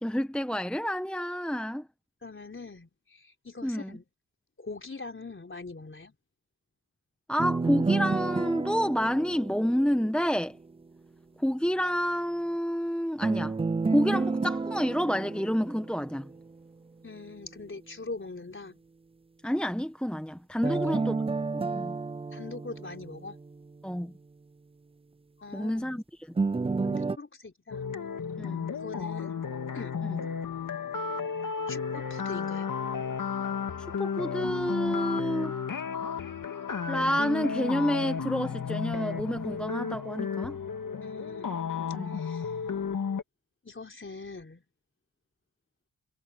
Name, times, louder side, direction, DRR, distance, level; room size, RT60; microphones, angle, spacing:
voice 1, 0.0-1.9 3.6-4.0 7.3-10.6 11.4-13.6 13.9-16.3 19.4-21.2 21.5-22.0 23.8-24.1 25.5-26.3 28.4-28.7 30.1-30.2 34.0-35.6 36.9-40.6 41.9-42.2, equal, 5° left, 1.3 m, -29 dB
voice 2, 2.2-4.0 4.6-6.1 17.0-18.8 20.6-21.0 22.3-23.4 25.4-26.0 26.9-27.9 28.7-29.5 29.7-29.9 31.7-32.7 41.0-41.6 42.1-42.5 43.6-44.6, left 3 dB, 35° left, 4.1 m, -42 dB
sound 1, 7.4-10.5 13.2-16.5 20.6-23.7 26.4-27.2, right 4 dB, 15° right, 0.5 m, -30 dB
sound 2, 27.7-43.2, left 6 dB, 55° left, 2.7 m, -33 dB
cardioid pair, 50°, 37 cm